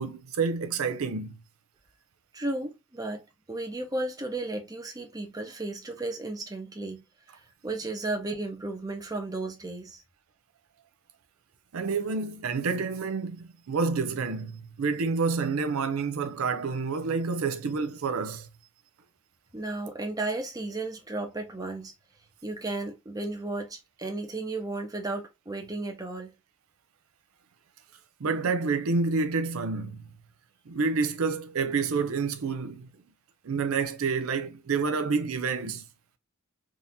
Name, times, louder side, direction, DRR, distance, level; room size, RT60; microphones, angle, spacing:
voice 1, 0.0-1.4 11.7-18.5 28.2-30.0 30.7-32.9 33.4-35.9, right 4 dB, 80° right, 0.5 m, -28 dB
voice 2, 2.3-7.0 7.6-10.0 19.5-21.9 22.4-26.3, right 2 dB, 20° right, 0.7 m, -34 dB
3.6 x 2.7 x 2.7 m
head